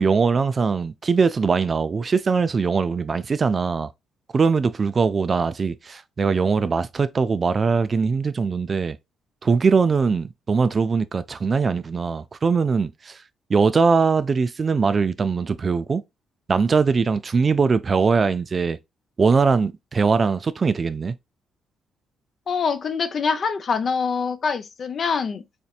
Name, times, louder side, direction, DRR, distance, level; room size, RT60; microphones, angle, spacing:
voice 1, 0.0-3.9 4.3-9.0 9.4-13.2 13.5-16.0 16.5-18.8 19.2-21.1, right 5 dB, 35° right, 0.3 m, -21 dB
voice 2, 22.5-25.4, left 5 dB, 50° left, 0.6 m, -24 dB
4.2 x 2.8 x 2.3 m
cardioid pair, 90°, 0 cm